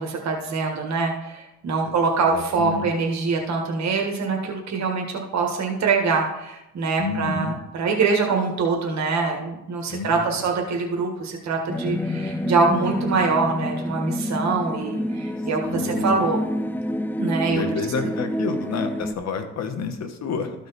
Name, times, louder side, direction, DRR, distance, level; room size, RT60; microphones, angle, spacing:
voice 1, 0.0-16.4 17.1-17.6, right 4 dB, 65° right, 1 dB, 1.6 m, -24 dB
voice 2, 2.3-2.9 7.0-7.6 9.9-10.5 15.6-16.3 17.5-20.7, left 5 dB, 60° left, 7 dB, 1.3 m, -30 dB
sound 1, 11.7-19.1, left 1 dB, 5° left, 0.5 m, -28 dB
13.5 x 5.0 x 4.1 m, 0.90 s
cardioid pair, 90°, 30 cm